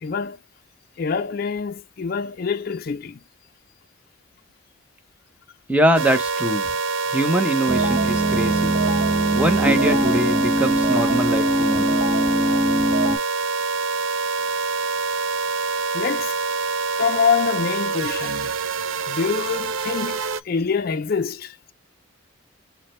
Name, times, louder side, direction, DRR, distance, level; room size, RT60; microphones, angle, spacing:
voice 1, 0.0-0.4 1.0-3.2 15.9-16.4 17.0-18.5 19.1-21.6, left 6 dB, 45° left, 0.4 m, -25 dB
voice 2, 5.7-6.8 7.1-8.7 9.3-12.0, right 1 dB, 5° right, 0.7 m, -23 dB
sound 1, 5.9-20.4, right 4 dB, 70° right, 0.5 m, -26 dB
sound 2, 7.7-13.2, right 1 dB, 30° right, 1.2 m, -21 dB
4.8 x 2.2 x 4.2 m
head